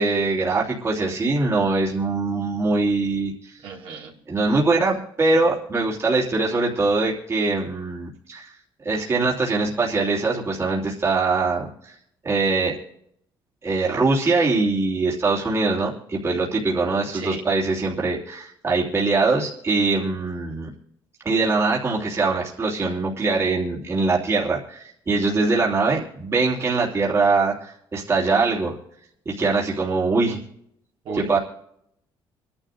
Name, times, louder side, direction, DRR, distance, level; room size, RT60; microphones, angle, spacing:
voice 1, 0.0-3.5 4.3-8.5 8.8-11.7 12.2-12.8 13.6-20.7 21.2-28.8 29.2-30.4 31.2-31.4, right 3 dB, 30° right, -3 dB, 3.1 m, -22 dB
voice 2, 3.6-4.1 17.1-17.4 31.0-31.4, right 4 dB, 70° right, -3 dB, 4.2 m, -34 dB
28.0 x 11.5 x 2.6 m, 0.72 s
cardioid pair, 120°, 9 cm